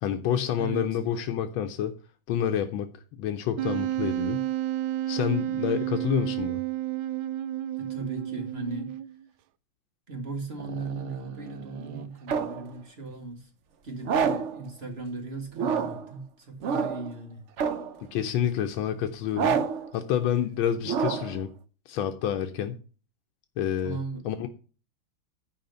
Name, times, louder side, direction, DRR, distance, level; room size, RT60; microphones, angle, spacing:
voice 1, 0.0-1.9 2.3-2.9 3.2-4.5 5.1-6.6 18.1-19.6 19.9-21.5 21.9-22.8 23.6-24.0 24.2-24.5, left 9 dB, 85° left, 7 dB, 1.5 m, -28 dB
voice 2, 0.6-1.0 7.8-8.9 10.1-13.5 13.8-17.4 23.8-24.2, right 3 dB, 30° right, 3 dB, 2.4 m, -37 dB
Wind instrument woodwind instrument, 3.6-9.2, right 14 dB, 80° right, 1.3 m, -31 dB
sound 1, 10.6-12.7 14.0-14.6 15.6-16.1 16.6-17.1 17.6-18.0 19.3-19.9 20.8-21.4, right 6 dB, 60° right, 0.7 m, -29 dB
10.5 x 5.0 x 6.7 m, 0.38 s
omnidirectional pair, 2.1 m